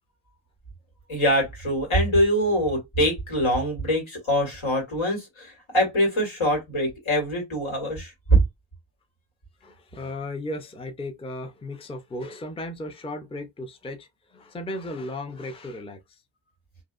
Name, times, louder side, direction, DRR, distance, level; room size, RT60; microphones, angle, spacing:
voice 1, 1.1-8.1, equal, 85° left, 1.9 m, -24 dB
voice 2, 9.6-16.2, left 1 dB, 15° left, 0.4 m, -35 dB
2.7 x 2.3 x 2.4 m
wide cardioid pair, 100°, 47 cm